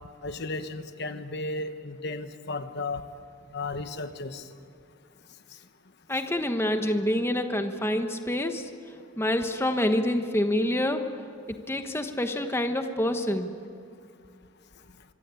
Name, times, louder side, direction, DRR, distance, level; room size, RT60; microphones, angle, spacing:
voice 1, 0.2-3.0 3.5-4.4, left 3 dB, 55° left, 9 dB, 1.1 m, -34 dB
voice 2, 6.1-8.7 9.2-11.0 11.5-13.5, left 1 dB, 15° left, 6 dB, 1.2 m, -27 dB
25.0 x 24.0 x 8.5 m, 2.3 s
head